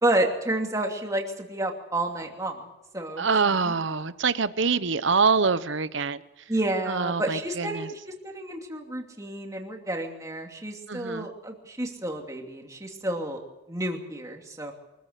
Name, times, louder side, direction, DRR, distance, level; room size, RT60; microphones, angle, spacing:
voice 1, 0.0-2.7 2.9-3.3 3.6-3.7 6.5-8.0 8.2-13.4 13.7-14.7, right 1 dB, 15° right, 2 dB, 2.7 m, -30 dB
voice 2, 3.2-6.2 6.9-7.9 10.9-11.3, right 5 dB, 60° right, 14 dB, 0.9 m, -25 dB
24.5 x 14.5 x 8.2 m, 1.0 s
head